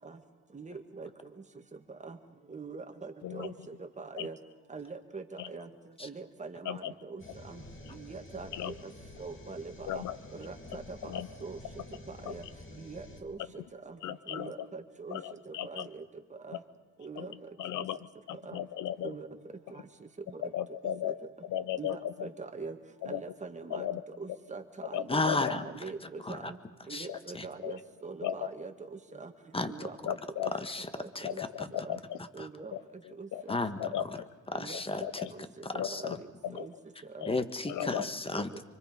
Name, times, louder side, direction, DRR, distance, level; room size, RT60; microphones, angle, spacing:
voice 1, 0.5-1.1 2.0-2.2 2.5-3.5 3.8-4.4 4.7-5.7 6.0-7.6 7.9-8.5 9.2-10.1 10.3-10.8 11.1-11.6 12.2-12.4 12.8-13.4 13.9-14.0 14.3-15.2 15.5-16.0 16.4-16.6 17.0-17.3 18.5-18.6 19.0-19.3 20.3-20.4 21.8-22.8 23.1-23.9 24.2-25.3 25.5-26.6 26.9-29.3 29.6-30.1 31.0-31.4 31.8-32.0 32.3-32.7 33.2-33.5 33.9-34.0 34.5-35.1 35.3-35.5 36.0-36.3 36.6-36.7 37.1-37.3 37.8-37.9 38.4-38.5, right 4 dB, 25° right, 5 dB, 1.9 m, -43 dB
voice 2, 3.2-3.5 4.2-4.3 5.4-5.5 6.6-6.9 8.5-8.7 9.9-10.2 11.0-11.3 12.3-12.4 14.0-14.5 15.1-15.9 17.2-17.3 17.6-18.0 18.3-19.1 20.5-21.2 21.5-22.3 23.0-23.2 23.7-24.0 24.9-25.5 27.1-27.2 27.6-27.8 28.2-28.3 30.1-30.5 31.2-32.2 32.7-33.4 33.8-34.3 35.0-35.3 35.8-36.2 36.4-36.7 37.2-37.3 37.7-38.0, left 11 dB, 80° left, 16 dB, 0.9 m, -36 dB
sound 1, 7.2-13.2, left 1 dB, 40° left, 3.0 m, -49 dB
voice 3, 25.1-26.5 26.9-27.1 27.3-27.5 29.5-29.9 30.4-30.9 31.1-31.7 32.4-32.5 33.5-34.2 34.5-35.3 35.6-36.2 37.2-38.5, left 2 dB, 20° left, 10 dB, 1.5 m, -34 dB
25.0 x 24.5 x 5.2 m, 1.3 s
cardioid pair, 90°, 30 cm